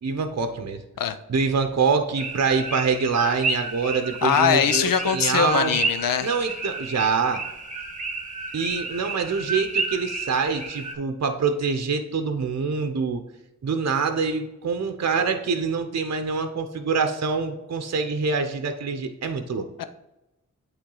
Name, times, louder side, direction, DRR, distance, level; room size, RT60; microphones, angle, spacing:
voice 1, 0.0-0.8 1.3-5.8 6.2-7.4 8.5-13.2 13.6-19.7, right 5 dB, 50° right, 7 dB, 0.7 m, -25 dB
sound 1, 2.2-10.9, right 3 dB, 25° right, 1.2 m, -31 dB
voice 2, 4.2-6.3 19.8-19.9, left 8 dB, 80° left, 11 dB, 0.6 m, -22 dB
8.5 x 3.4 x 3.8 m, 0.95 s
cardioid pair, 40°, 33 cm